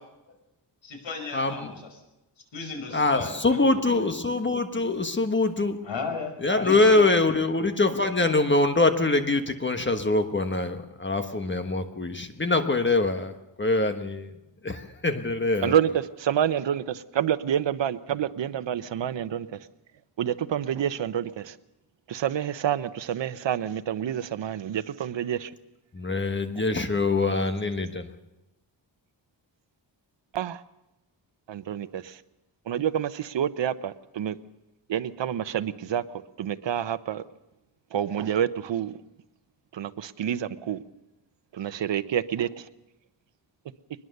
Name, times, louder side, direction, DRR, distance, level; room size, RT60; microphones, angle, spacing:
voice 1, 0.8-1.8 2.5-4.2 5.8-6.3 6.6-7.1, left 4 dB, 90° left, 3 dB, 5.8 m, -35 dB
voice 2, 1.3-1.7 2.9-5.8 6.4-13.3 13.6-14.3 14.6-15.7 25.9-28.1, left 2 dB, 25° left, 7 dB, 1.3 m, -24 dB
voice 3, 16.2-19.5 20.2-21.5 22.1-25.5 30.3-30.6 31.5-32.0 32.7-34.4 34.9-36.0 36.4-37.2 37.9-39.0 39.7-40.8 41.5-42.5, right 9 dB, 75° right, 14 dB, 1.0 m, -28 dB
22.5 x 21.0 x 6.7 m, 0.97 s
wide cardioid pair, 155°, 44 cm